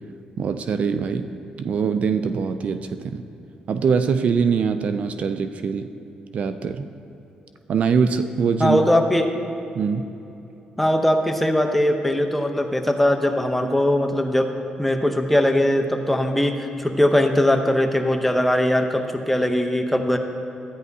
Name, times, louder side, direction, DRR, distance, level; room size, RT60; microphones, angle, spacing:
voice 1, 0.4-1.3 1.6-3.2 3.7-5.9 6.3-6.9 7.7-8.8 9.8-10.0, right 6 dB, 55° right, 9 dB, 0.4 m, -23 dB
voice 2, 8.6-9.3 10.8-14.5 14.8-20.2, left 1 dB, 5° left, 4 dB, 0.7 m, -20 dB
13.0 x 9.3 x 2.7 m, 2.9 s
cardioid pair, 95°, 3 cm